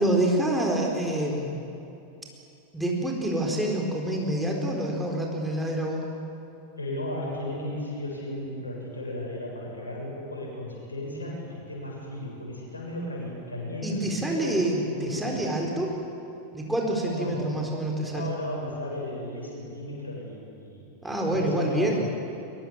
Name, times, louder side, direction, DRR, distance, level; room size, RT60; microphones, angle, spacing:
voice 1, 0.0-1.7 2.7-6.0 13.8-15.9 16.5-18.3 21.0-22.0, right 1 dB, 5° right, 0 dB, 4.1 m, -27 dB
voice 2, 6.8-14.6 14.9-15.4 17.1-17.4 18.0-22.0, left 1 dB, 75° left, -2 dB, 7.3 m, -35 dB
22.5 x 22.5 x 7.3 m, 2.7 s
figure-of-eight pair, 90°, 0 cm